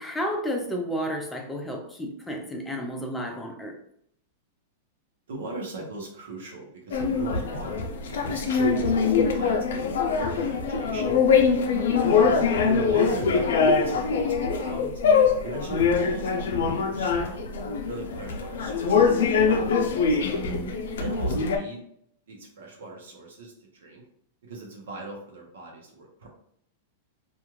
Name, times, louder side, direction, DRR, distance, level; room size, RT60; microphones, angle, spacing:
voice 1, 0.0-3.8 12.1-12.6 20.2-20.9, equal, 5° left, 1 dB, 0.5 m, -32 dB
voice 2, 5.3-9.8 10.3-11.7 12.6-14.9 15.4-17.5 17.9-20.2 21.0-21.8 22.3-24.0 24.4-26.3, right 2 dB, 85° right, 0 dB, 0.9 m, -39 dB
sound 1, 6.9-21.6, left 5 dB, 80° left, 0.4 m, -23 dB
2.4 x 2.3 x 3.0 m, 0.68 s
supercardioid pair, 145°, 0 cm